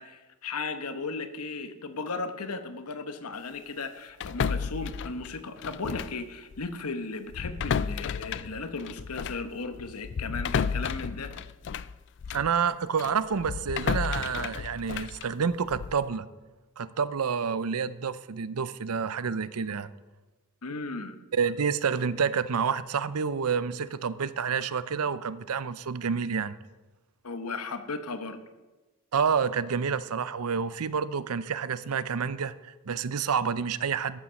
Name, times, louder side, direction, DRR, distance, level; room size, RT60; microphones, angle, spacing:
voice 1, 0.0-11.3 20.6-21.2 27.2-28.4, left 3 dB, 80° left, 9 dB, 1.1 m, -36 dB
sound 1, 4.2-6.3 6.5-6.7 7.3-12.6 13.0-16.1, left 6 dB, 55° left, 0.4 m, -32 dB
voice 2, 12.3-16.3 16.8-19.9 21.3-26.6 29.1-34.2, right 6 dB, 80° right, 16 dB, 0.6 m, -29 dB
13.5 x 7.2 x 6.4 m, 1.2 s
head